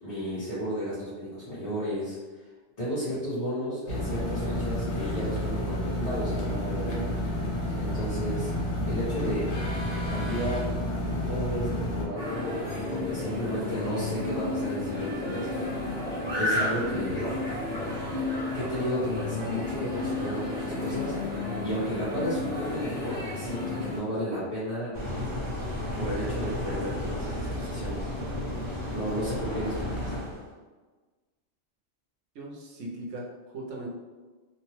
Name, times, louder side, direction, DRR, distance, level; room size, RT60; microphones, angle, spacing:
voice 1, 0.0-2.2 2.8-7.1 7.7-8.5 8.9-9.6 10.1-10.7 11.2-15.5 16.3-17.3 18.5-21.2 21.6-24.9 26.0-28.1 28.9-29.9, equal, 35° left, -14 dB, 1.0 m, -33 dB
sound 1, 3.9-12.1, left 1 dB, 70° left, 1.1 m, -30 dB
sound 2, 12.1-24.0, left 2 dB, 10° left, 1.1 m, -32 dB
sound 3, 24.9-30.5, left 1 dB, 50° right, 1.0 m, -33 dB
voice 2, 32.3-33.9, right 1 dB, 85° right, -2 dB, 1.0 m, -39 dB
2.8 x 2.2 x 3.0 m, 1.3 s
omnidirectional pair, 1.2 m